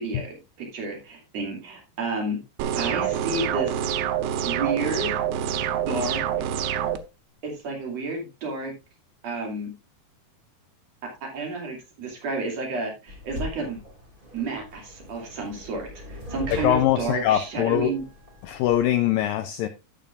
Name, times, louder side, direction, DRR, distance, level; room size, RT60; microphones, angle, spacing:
voice 1, 0.0-2.4 2.7-3.9 4.4-5.1 5.5-5.6 5.9-6.5 7.4-8.7 9.2-9.7 11.2-13.8 14.3-18.0, right 3 dB, 45° right, 1 dB, 3.3 m, -31 dB
sound 1, 2.6-7.0, right 9 dB, 90° right, 2.8 m, -26 dB
sound 2, 13.1-19.0, left 1 dB, 15° right, 1.8 m, -40 dB
voice 2, 16.6-17.9 18.4-19.7, left 12 dB, 90° left, 9 dB, 2.0 m, -22 dB
14.0 x 7.0 x 2.4 m, 0.27 s
omnidirectional pair, 4.6 m